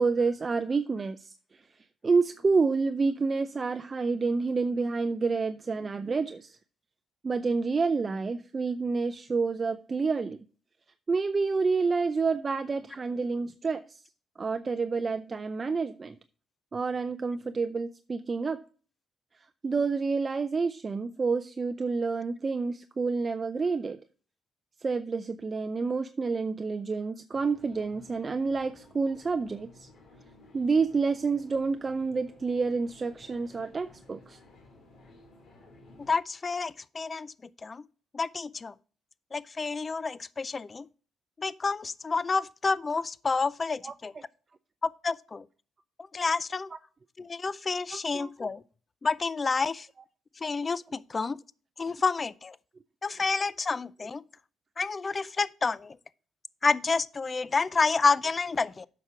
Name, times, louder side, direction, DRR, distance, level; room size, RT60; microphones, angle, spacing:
voice 1, 0.0-1.3 2.0-6.6 7.2-10.4 11.1-14.0 14.4-16.2 16.7-18.6 19.6-24.0 24.8-29.9 30.5-34.4 43.8-43.9 47.9-48.3, right 4 dB, 35° right, 0.4 m, -28 dB
sound 1, 27.3-36.1, left 2 dB, 65° left, 2.2 m, -55 dB
voice 2, 36.0-37.3 37.6-37.8 38.1-38.7 39.3-40.9 41.4-44.1 44.8-45.4 46.1-46.7 47.2-48.6 49.0-49.9 50.4-51.4 51.8-52.6 53.0-54.2 54.8-56.0 56.6-58.9, left 4 dB, 30° left, 0.4 m, -29 dB
8.1 x 5.9 x 4.8 m
cardioid pair, 90°, 0 cm